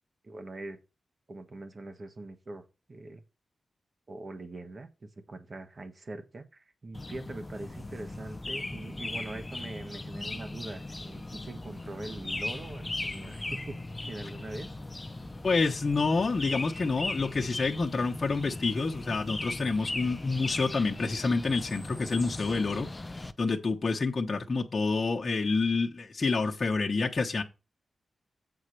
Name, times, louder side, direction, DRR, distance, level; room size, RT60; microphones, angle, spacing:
voice 1, 0.2-0.8 1.3-3.2 4.1-13.8 14.1-14.7, right 2 dB, 45° right, 1.5 m, -42 dB
sound 1, 6.9-23.3, left 2 dB, 25° left, 0.6 m, -38 dB
voice 2, 15.4-22.9 23.4-27.4, left 3 dB, 45° left, 1.1 m, -28 dB
8.1 x 4.3 x 6.7 m
cardioid pair, 80°, 0 cm